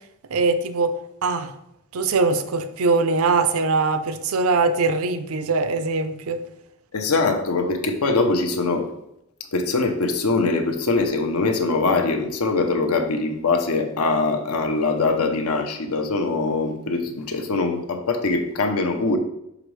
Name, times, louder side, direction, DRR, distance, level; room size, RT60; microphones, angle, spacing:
voice 1, 0.3-0.9 1.2-1.5 1.9-6.4, right 3 dB, 75° right, 10 dB, 0.5 m, -22 dB
voice 2, 6.9-8.9 9.5-19.2, left 3 dB, 85° left, 5 dB, 0.8 m, -22 dB
6.0 x 5.0 x 3.2 m, 0.82 s
head